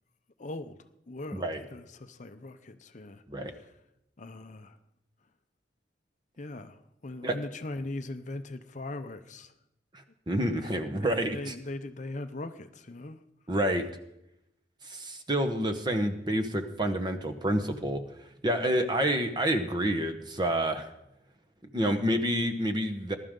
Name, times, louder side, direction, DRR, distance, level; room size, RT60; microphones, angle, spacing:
voice 1, 0.4-0.8 1.1-3.2 4.2-4.8 6.4-9.5 10.6-13.2, left 2 dB, 40° left, 0.6 m, -40 dB
voice 2, 1.3-1.6 3.3-3.5 7.2-7.4 10.3-11.5 13.5-13.8 14.8-18.0 18.4-20.9 21.7-23.2, right 1 dB, 25° right, 1.1 m, -28 dB
20.0 x 12.0 x 3.8 m
head